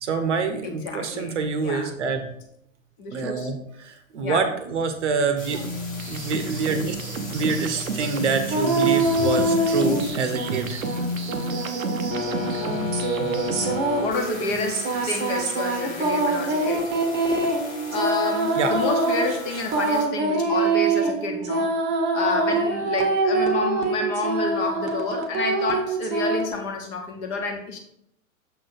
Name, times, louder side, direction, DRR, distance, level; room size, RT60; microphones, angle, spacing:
voice 1, 0.0-2.3 3.1-5.6 6.0-7.0 7.3-10.8 18.6-18.8, right 4 dB, 60° right, 8 dB, 0.9 m, -26 dB
voice 2, 0.6-1.3 1.6-1.9 3.0-3.5 4.2-4.4 14.0-16.9 17.9-21.7 22.1-27.8, left 3 dB, 30° left, 2 dB, 1.1 m, -29 dB
sound 1, 5.4-20.1, left 3 dB, 80° left, 1.6 m, -36 dB
sound 2, 5.5-13.8, right 2 dB, 75° right, 0.7 m, -31 dB
sound 3, 8.5-10.6 10.8-26.5, right 2 dB, 25° right, 1.0 m, -24 dB
6.5 x 3.8 x 4.2 m, 0.73 s
figure-of-eight pair, 100°, 41 cm